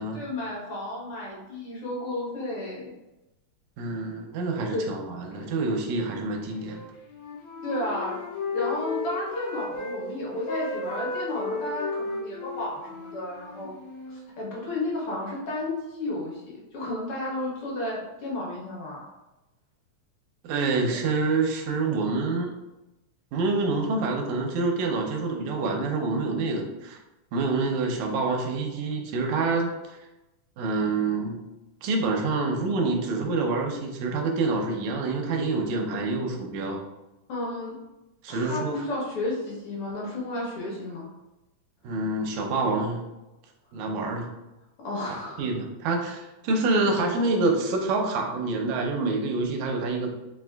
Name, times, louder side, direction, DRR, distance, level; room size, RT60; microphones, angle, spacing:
voice 1, 0.1-2.9 4.7-4.9 5.3-5.4 7.6-8.2 8.5-13.7 14.1-19.1 37.3-37.7 38.3-41.0 44.8-45.5, left 1 dB, 60° left, -5 dB, 1.7 m, -32 dB
voice 2, 3.8-6.8 20.4-22.5 23.3-27.0 27.3-30.0 30.6-31.4 31.8-36.8 38.2-38.8 41.8-43.0 43.7-44.3 45.4-50.1, right 3 dB, 80° right, 2 dB, 1.9 m, -27 dB
Wind instrument woodwind instrument, 6.6-10.0 10.3-14.2, left 3 dB, 85° left, 1.0 m, -34 dB
4.8 x 3.5 x 2.2 m, 0.98 s
omnidirectional pair, 3.4 m